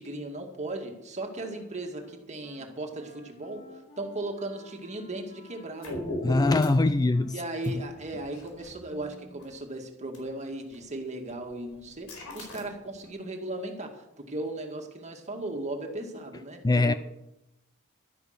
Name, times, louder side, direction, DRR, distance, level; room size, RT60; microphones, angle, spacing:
voice 1, 0.0-3.7 4.0-6.0 7.3-16.9, right 2 dB, 30° right, 2.2 m, -37 dB
Wind instrument woodwind instrument, 1.5-8.9, left 1 dB, 35° left, 4.3 m, -55 dB
sound 1, 5.8-6.9 7.6-9.6 10.1-10.2 10.7-10.9 11.3-13.1, left 1 dB, 80° left, 4.5 m, -37 dB
voice 2, 6.2-7.3 16.6-16.9, left 2 dB, 20° left, 0.4 m, -22 dB
12.5 x 10.5 x 6.6 m
head